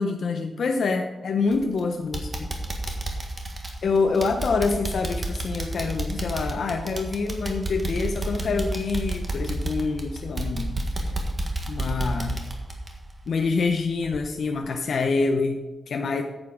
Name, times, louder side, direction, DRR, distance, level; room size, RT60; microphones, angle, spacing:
voice 1, 0.0-2.5 3.8-11.1 11.7-12.4 13.3-16.2, left 4 dB, 60° left, 4 dB, 0.7 m, -26 dB
sound 1, 1.5-1.8 2.1-13.7 14.0-14.2 14.6-14.7, right 1 dB, 25° right, 1.5 m, -31 dB
9.6 x 8.1 x 5.0 m, 1.2 s
wide cardioid pair, 155°, 0 cm